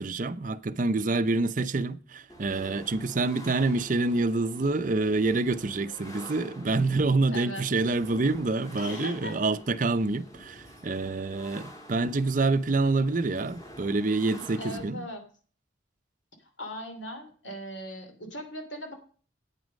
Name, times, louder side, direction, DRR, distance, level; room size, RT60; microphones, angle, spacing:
voice 1, 0.0-15.0, right 3 dB, 40° right, 0.6 m, -27 dB
sound 1, 2.3-14.8, equal, 20° left, 1.9 m, -47 dB
voice 2, 7.3-7.6 8.8-9.4 14.6-15.2 16.4-18.9, left 1 dB, 70° left, 2.9 m, -39 dB
9.5 x 9.1 x 5.2 m
head